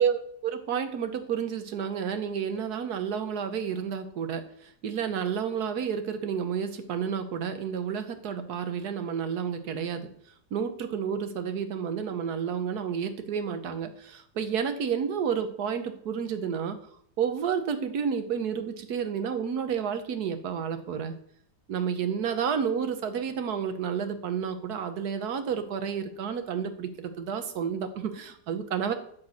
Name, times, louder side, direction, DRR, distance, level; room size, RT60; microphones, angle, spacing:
voice 1, 0.0-10.1 10.5-16.8 17.2-21.1 21.7-28.9, right 7 dB, 65° right, 8 dB, 1.5 m, -30 dB
13.0 x 4.7 x 6.3 m, 0.65 s
omnidirectional pair, 1.8 m